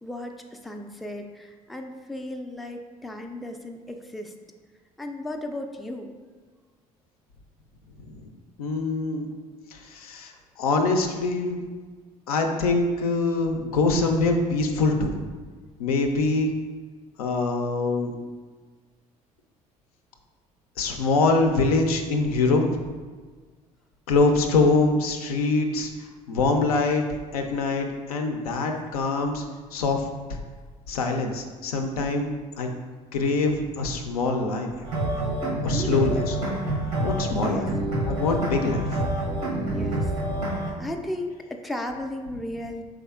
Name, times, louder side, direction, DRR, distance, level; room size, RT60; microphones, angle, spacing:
voice 1, 0.0-4.3 5.0-6.1 35.7-36.1 37.4-37.7 38.3-38.5 39.7-40.1 40.8-42.8, left 1 dB, ahead, 3 dB, 0.3 m, -35 dB
voice 2, 8.6-9.3 9.7-11.6 12.3-15.1 15.8-16.5 17.2-18.1 20.8-22.6 24.1-25.9 26.3-27.0 27.3-29.4 29.7-30.4 30.9-32.3 32.6-32.7 33.1-34.7 35.6-36.6 37.0-37.8 38.1-38.8, left 3 dB, 75° left, 4 dB, 0.4 m, -24 dB
sound 1, 34.8-40.7, right 1 dB, 80° right, 0.8 m, -27 dB
4.9 x 3.5 x 2.3 m, 1.4 s
figure-of-eight pair, 55°, 19 cm